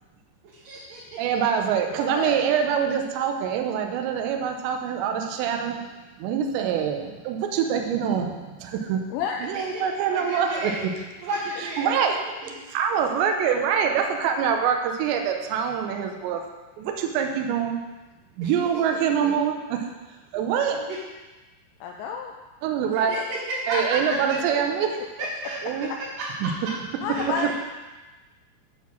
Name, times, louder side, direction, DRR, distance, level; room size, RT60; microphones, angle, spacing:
voice 1, 0.6-1.2 9.5-9.8 10.1-10.9 11.2-12.0 12.4-12.5 18.4-18.5 19.2-19.3 20.7-21.0 22.9-24.1 25.2-25.6 26.2-26.7 27.1-27.2, right 2 dB, 55° right, -10 dB, 3.0 m, -32 dB
voice 2, 1.2-5.8 6.2-9.0 9.4-10.9 11.6-12.2 12.7-16.4 16.8-17.8 18.4-19.9 20.3-20.8 22.6-23.1 23.7-24.9 25.6-25.9 26.4-26.5, right 7 dB, 75° right, 3 dB, 2.8 m, -25 dB
voice 3, 2.0-2.5 9.1-9.4 11.6-11.7 21.8-22.4 23.1-23.2 24.1-24.2 24.5-24.6 27.0-27.5, left 6 dB, 85° left, 2 dB, 2.6 m, -31 dB
9.4 x 4.1 x 7.1 m, 1.2 s
omnidirectional pair, 5.5 m